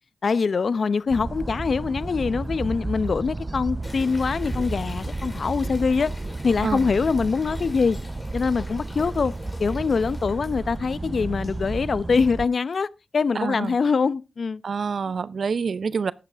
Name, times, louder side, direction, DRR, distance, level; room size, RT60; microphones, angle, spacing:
voice 1, 0.2-6.1 6.4-8.0 8.3-9.3 9.6-14.6, left 5 dB, 65° left, 0.7 m, -24 dB
sound 1, 1.1-12.5, right 2 dB, 30° right, 0.6 m, -32 dB
sound 2, 3.8-11.8, left 1 dB, 25° left, 4.0 m, -45 dB
voice 2, 13.3-13.8 14.6-16.1, right 5 dB, 70° right, 0.7 m, -27 dB
14.0 x 11.0 x 3.5 m
cardioid pair, 50°, 0 cm